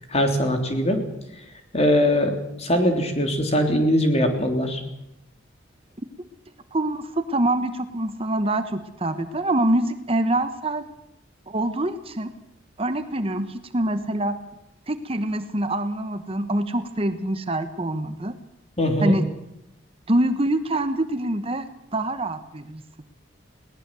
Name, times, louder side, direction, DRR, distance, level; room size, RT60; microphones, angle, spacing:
voice 1, 0.1-1.0 1.7-4.8 18.8-19.1, equal, 35° left, 5 dB, 3.5 m, -21 dB
voice 2, 6.7-10.9 11.5-12.3 12.8-14.4 14.9-18.3 19.0-19.2 20.1-21.6 21.9-22.8, right 1 dB, 30° right, 10 dB, 1.1 m, -25 dB
21.0 x 18.5 x 7.7 m, 0.84 s
head